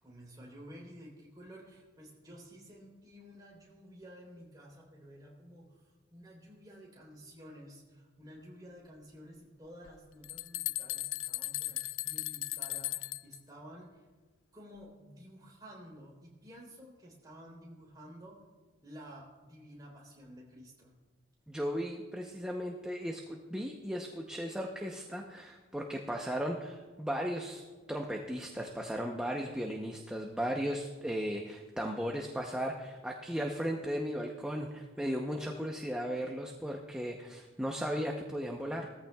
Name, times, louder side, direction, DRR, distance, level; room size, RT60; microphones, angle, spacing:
voice 1, 0.0-14.0 14.5-18.4 18.8-20.9, equal, 20° right, -3 dB, 3.4 m, -52 dB
sound 1, 9.9-10.0 10.2-13.4, left 17 dB, 70° left, 0.3 m, -37 dB
voice 2, 21.5-38.9, equal, 5° right, 1 dB, 0.7 m, -36 dB
19.5 x 14.5 x 2.3 m, 1.3 s
head